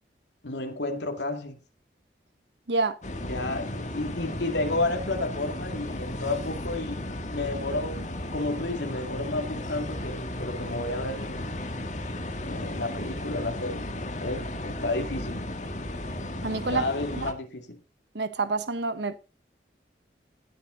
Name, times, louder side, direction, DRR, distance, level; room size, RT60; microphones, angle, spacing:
voice 1, 0.4-1.6 3.2-11.6 12.4-13.9 14.2-15.5 16.7-17.8, left 2 dB, 85° left, 2.4 m, -31 dB
sound 1, 3.0-17.3, left 1 dB, 40° left, 1.9 m, -35 dB
voice 2, 16.4-16.9 17.1-17.3 18.1-19.2, right 3 dB, 80° right, 1.2 m, -28 dB
17.5 x 8.4 x 3.9 m
head